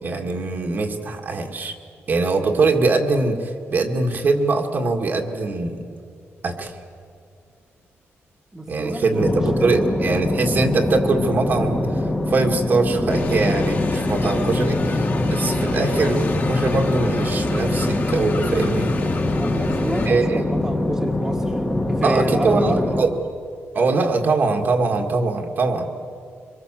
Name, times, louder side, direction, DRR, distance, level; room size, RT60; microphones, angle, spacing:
voice 1, 0.0-1.8 2.1-5.9 6.4-6.7 8.7-18.9 20.1-20.4 22.0-23.1 23.7-25.9, right 3 dB, 40° right, 3 dB, 1.9 m, -22 dB
voice 2, 8.5-9.8 14.4-14.6 19.4-21.6 21.9-23.0, right 1 dB, 10° right, 1 dB, 1.7 m, -29 dB
sound 1, 9.2-23.0, left 1 dB, 10° left, 1.7 m, -23 dB
sound 2, 13.1-20.1, left 3 dB, 40° left, 2.7 m, -29 dB
25.5 x 23.0 x 7.5 m, 2.3 s
wide cardioid pair, 180°, 5 cm